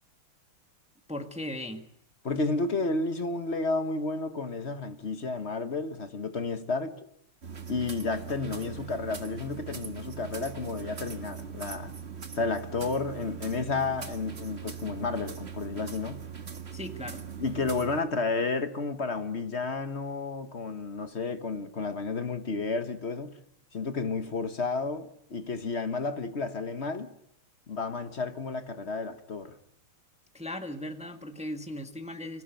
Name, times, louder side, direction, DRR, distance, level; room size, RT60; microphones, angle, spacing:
voice 1, 1.1-1.9 16.7-17.2 30.3-32.4, left 1 dB, 5° right, 1.2 m, -37 dB
voice 2, 2.2-7.0 7.7-11.9 12.3-16.2 17.4-23.4 23.7-27.1 27.7-29.6, left 3 dB, 40° left, 1.2 m, -31 dB
sound 1, 7.4-18.0, right 7 dB, 30° right, 1.6 m, -41 dB
25.0 x 16.0 x 9.1 m
omnidirectional pair, 2.4 m